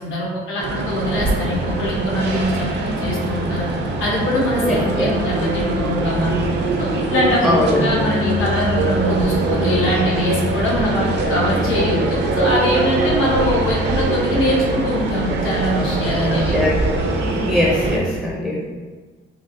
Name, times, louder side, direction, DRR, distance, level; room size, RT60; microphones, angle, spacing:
voice 1, 0.0-3.7 4.0-6.4 6.8-16.5, left 1 dB, 75° left, -3 dB, 0.9 m, -22 dB
sound 1, 0.6-18.0, right 2 dB, 60° right, 0.5 m, -22 dB
voice 2, 4.6-5.2 7.4-8.0 16.5-16.8 17.2-18.7, left 1 dB, ahead, -4 dB, 0.4 m, -21 dB
3.3 x 2.3 x 2.5 m, 1.4 s
cardioid pair, 80°, 21 cm